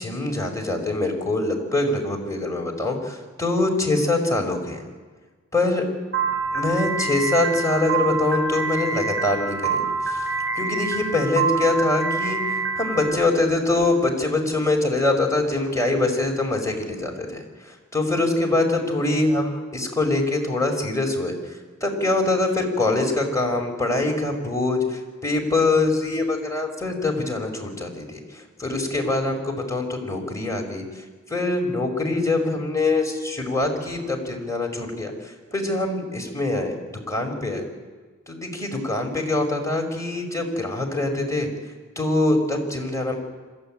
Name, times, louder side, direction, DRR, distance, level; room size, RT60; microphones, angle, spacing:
voice 1, 0.0-4.8 5.5-5.8 6.5-9.8 10.0-10.3 10.5-36.8 37.1-37.7 38.3-41.5 41.9-43.1, left 2 dB, 10° left, 1 dB, 5.2 m, -24 dB
Piano, 6.1-13.1, right 4 dB, 40° right, 6.9 m, -26 dB
27.0 x 13.5 x 9.0 m, 1.4 s
wide cardioid pair, 75°, 30 cm